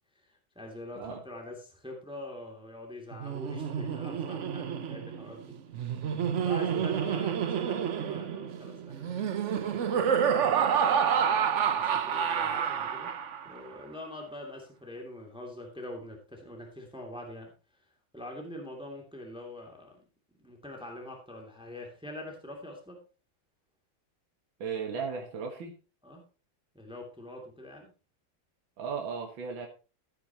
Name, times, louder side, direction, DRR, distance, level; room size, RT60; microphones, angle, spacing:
voice 1, 0.6-5.4 6.0-9.1 9.5-10.6 11.7-13.1 13.4-17.5 18.1-20.0 20.4-23.0 26.0-26.2 26.7-27.9, left 1 dB, ahead, 1 dB, 2.5 m, -44 dB
Laughter, 3.1-13.6, right 8 dB, 55° right, 0.8 m, -29 dB
voice 2, 6.6-7.0 24.6-25.8 28.8-29.7, right 6 dB, 70° right, 2 dB, 2.3 m, -36 dB
14.5 x 9.3 x 2.9 m, 0.33 s
omnidirectional pair, 2.2 m